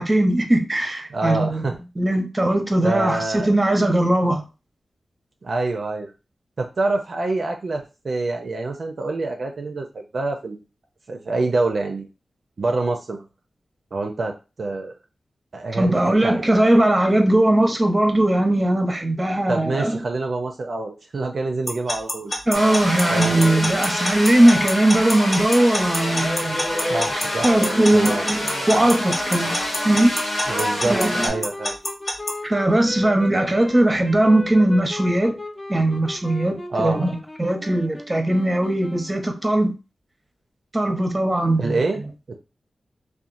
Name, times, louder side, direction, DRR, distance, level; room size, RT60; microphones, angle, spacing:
voice 1, 0.0-1.7 2.0-4.4 15.7-20.0 22.5-26.6 27.1-29.5 29.8-30.2 30.9-31.3 32.4-35.4 35.7-39.7 40.7-41.8, right 1 dB, 25° right, 0.7 m, -19 dB
voice 2, 1.1-1.8 2.8-3.5 5.4-6.1 6.6-10.6 11.1-12.1 12.6-13.3 13.9-14.9 15.5-16.4 19.5-22.3 23.1-23.4 26.9-27.5 27.9-28.3 30.5-31.8 36.7-37.0 41.6-42.0 42.3-42.4, right 2 dB, 65° right, 0.4 m, -26 dB
Alarm / Clock, 21.7-32.3, left 1 dB, 50° left, 0.8 m, -26 dB
sound 1, 22.5-31.3, left 1 dB, 85° left, 1.1 m, -26 dB
sound 2, 28.8-39.5, left 1 dB, 25° left, 0.5 m, -37 dB
2.8 x 2.2 x 2.5 m
cardioid pair, 40°, 0 cm